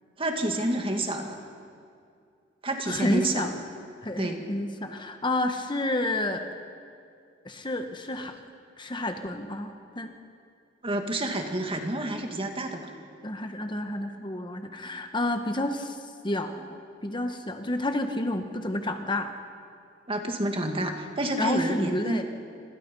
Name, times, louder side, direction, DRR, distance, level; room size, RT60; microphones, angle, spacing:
voice 1, 0.2-1.4 2.6-3.4 4.2-4.4 10.8-12.9 20.1-22.2, right 1 dB, 30° right, 4 dB, 2.3 m, -29 dB
voice 2, 2.9-3.6 4.0-6.4 7.4-8.3 8.8-10.1 13.2-16.0 16.2-19.3 21.4-22.2, left 1 dB, 25° left, 6 dB, 1.3 m, -30 dB
28.0 x 25.0 x 5.5 m, 2.4 s
head